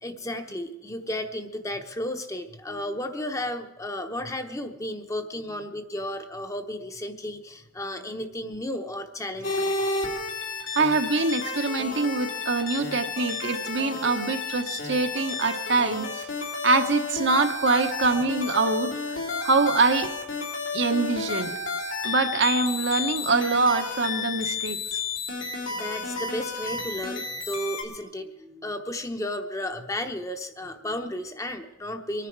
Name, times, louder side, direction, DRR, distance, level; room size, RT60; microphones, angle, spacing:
voice 1, 0.0-9.8 25.7-32.3, left 1 dB, 15° left, 6 dB, 0.9 m, -33 dB
sound 1, 9.4-27.8, left 4 dB, 85° left, 3.3 m, -31 dB
voice 2, 10.7-16.3 16.6-18.9 19.4-20.1 20.7-21.5 22.0-24.8, right 3 dB, 65° right, 7 dB, 1.2 m, -24 dB
24.0 x 10.0 x 4.7 m, 0.97 s
head